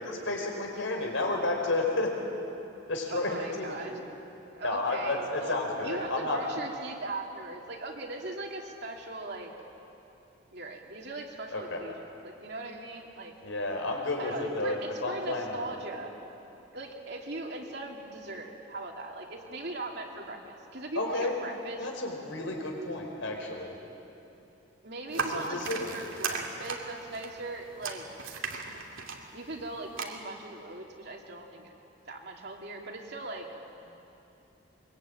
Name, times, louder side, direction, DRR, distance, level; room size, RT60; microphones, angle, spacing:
voice 1, 0.0-2.1 2.9-3.8 4.6-6.4 11.5-11.8 13.4-15.8 20.9-21.3 21.8-23.7 25.1-25.9, left 2 dB, 75° left, 1 dB, 4.8 m, -31 dB
voice 2, 3.1-3.9 4.5-9.5 10.5-13.3 14.2-16.1 16.7-21.9 24.8-28.1 29.3-31.7 32.1-33.5, right 2 dB, 55° right, 0 dB, 2.8 m, -39 dB
sound 1, 25.1-30.0, right 5 dB, 80° right, 2.5 m, -36 dB
23.0 x 23.0 x 9.0 m, 2.9 s
head